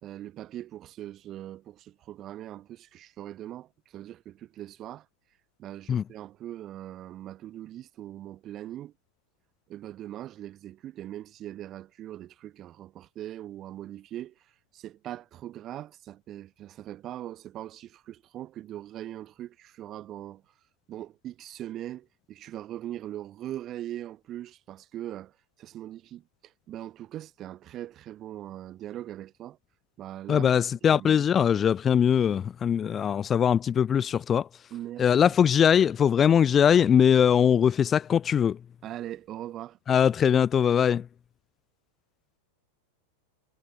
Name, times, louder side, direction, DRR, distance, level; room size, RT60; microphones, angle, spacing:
voice 1, 0.0-5.1 5.6-8.9 9.7-20.5 20.9-29.6 30.0-30.6 30.9-31.2 34.7-35.3 38.8-39.8, right 12 dB, 30° right, 1.0 m, -41 dB
voice 2, 30.3-34.5 35.0-38.6 39.9-41.1, left 8 dB, 25° left, 0.4 m, -21 dB
figure-of-eight pair, 90°, 0 cm